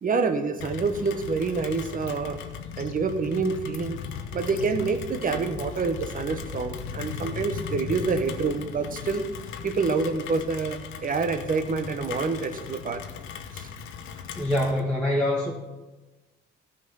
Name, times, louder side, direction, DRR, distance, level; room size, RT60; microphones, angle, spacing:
voice 1, 0.0-2.4 2.8-4.0 4.3-9.2 9.6-13.0 13.5-13.7, right 4 dB, 45° right, 8 dB, 1.1 m, -27 dB
Rain, 0.6-14.8, left 7 dB, 90° left, 0.8 m, -37 dB
voice 2, 14.3-15.5, left 1 dB, ahead, -4 dB, 1.6 m, -24 dB
13.5 x 5.3 x 5.6 m, 1.1 s
cardioid pair, 90°, 20 cm